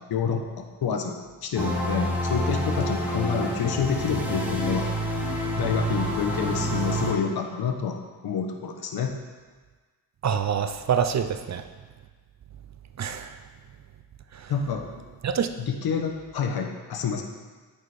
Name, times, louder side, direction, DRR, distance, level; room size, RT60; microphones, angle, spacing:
voice 1, 0.1-4.9 5.6-9.1 14.5-14.9 15.6-17.2, left 6 dB, 65° left, 4 dB, 1.1 m, -28 dB
sound 1, 1.6-7.1, equal, 5° right, 1.5 m, -28 dB
voice 2, 10.2-11.6 13.0-13.3 14.3-14.5 15.2-15.5, right 7 dB, 45° right, 9 dB, 0.6 m, -26 dB
8.7 x 5.0 x 4.2 m, 1.4 s
cardioid pair, 70°, 40 cm